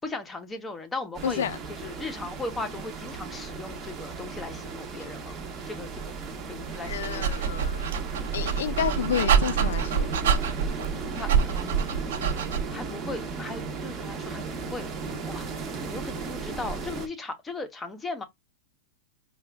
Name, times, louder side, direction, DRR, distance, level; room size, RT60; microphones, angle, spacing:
voice 1, 0.0-1.4 1.7-5.4 5.7-6.0 6.5-7.5 11.2-11.9 12.7-14.9 15.3-15.5 15.8-18.2, left 3 dB, 10° left, 0.7 m, -37 dB
sound 1, 1.1-17.1, right 4 dB, 20° right, 0.8 m, -36 dB
voice 2, 1.2-1.6 5.0-5.1 6.8-8.0 8.3-10.1, left 8 dB, 85° left, 0.4 m, -30 dB
Dog, 6.7-12.8, right 7 dB, 85° right, 1.2 m, -26 dB
4.8 x 2.2 x 3.3 m
supercardioid pair, 160°, 0 cm